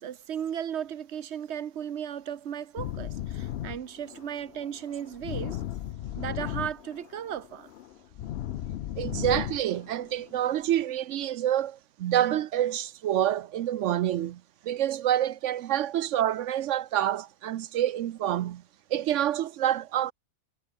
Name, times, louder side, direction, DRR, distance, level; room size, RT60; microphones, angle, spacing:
voice 1, 0.0-5.6 6.2-7.7, right 9 dB, 50° right, 1.1 m, -35 dB
sound 1, 2.8-10.8, left 12 dB, 65° left, 0.6 m, -36 dB
voice 2, 9.0-18.6 18.9-20.1, right 11 dB, 65° right, 0.8 m, -27 dB
omnidirectional pair, 1.6 m